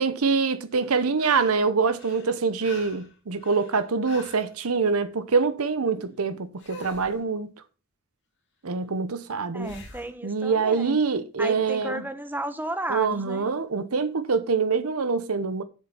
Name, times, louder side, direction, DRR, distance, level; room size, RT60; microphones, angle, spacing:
voice 1, 0.0-7.5 8.6-9.8 10.2-12.0 12.9-15.6, right 4 dB, 90° right, 0.8 m, -25 dB
sound 1, 0.7-1.7 1.9-4.5 6.6-7.2 9.6-10.1 13.0-13.1, left 3 dB, 55° left, 2.6 m, -45 dB
voice 2, 9.5-11.0 11.4-13.5, right 1 dB, 10° right, 0.9 m, -33 dB
7.8 x 7.3 x 5.7 m
head